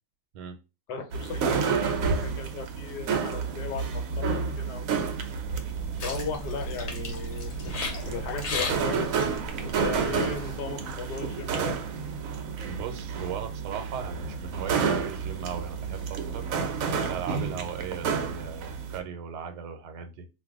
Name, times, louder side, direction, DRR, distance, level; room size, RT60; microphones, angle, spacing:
voice 1, 0.9-4.9 6.0-9.3 9.6-11.8, left 5 dB, 85° left, 5 dB, 1.3 m, -37 dB
sound 1, 1.1-19.0, right 5 dB, 70° right, 0.9 m, -30 dB
sound 2, 5.5-10.6, left 2 dB, 60° left, 1.1 m, -36 dB
voice 2, 12.7-16.5 17.0-20.3, right 7 dB, 85° right, 8 dB, 1.2 m, -38 dB
2.6 x 2.5 x 3.5 m, 0.28 s
omnidirectional pair, 1.8 m